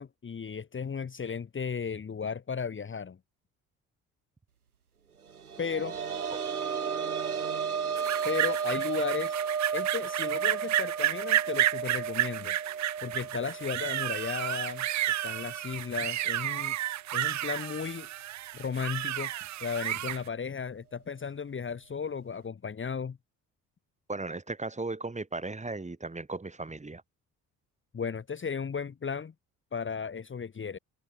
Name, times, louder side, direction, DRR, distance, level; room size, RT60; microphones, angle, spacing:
voice 1, 0.0-3.2 5.6-6.0 8.2-9.4 9.7-14.9 15.2-16.8 17.1-18.1 18.5-19.3 19.6-23.2 27.9-29.3 29.7-30.8, left 6 dB, 25° left, 1.6 m, -35 dB
sound 1, 5.3-16.8 17.1-17.2 18.7-18.8, right 6 dB, 90° right, 1.4 m, -34 dB
sound 2, 8.0-20.2, right 13 dB, 40° right, 0.8 m, -31 dB
voice 2, 24.1-27.0, right 3 dB, 15° right, 3.0 m, -36 dB
open air
figure-of-eight pair, 50°, 44 cm